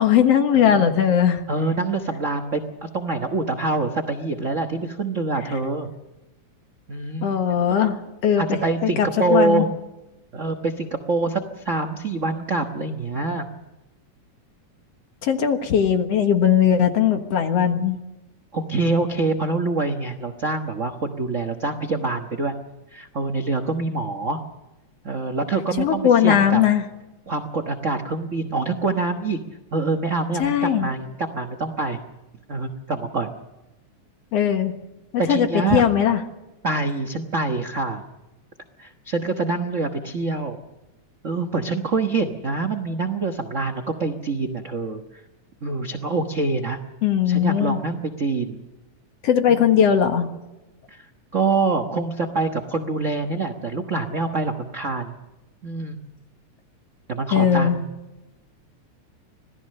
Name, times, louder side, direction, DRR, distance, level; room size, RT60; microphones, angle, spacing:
voice 1, 0.0-1.4 7.2-8.0 8.2-8.6 9.0-9.7 15.2-18.0 25.8-26.8 30.4-30.9 34.3-34.7 35.1-36.2 47.0-47.8 49.2-50.3 57.3-57.8, left 9 dB, 60° left, 7 dB, 2.3 m, -19 dB
voice 2, 0.5-0.9 1.5-5.9 6.9-7.4 7.7-7.8 8.4-9.7 10.3-13.5 18.5-22.5 22.9-24.4 25.0-26.6 27.3-29.4 29.7-32.0 32.5-33.3 35.2-35.8 36.6-38.0 38.8-40.6 41.2-45.0 45.6-46.8 47.3-48.6 49.6-49.7 50.9-51.0 51.3-55.1 55.6-56.0 57.1-57.9, right 3 dB, 85° right, 8 dB, 0.6 m, -25 dB
26.0 x 18.0 x 6.6 m, 1.0 s
omnidirectional pair, 3.4 m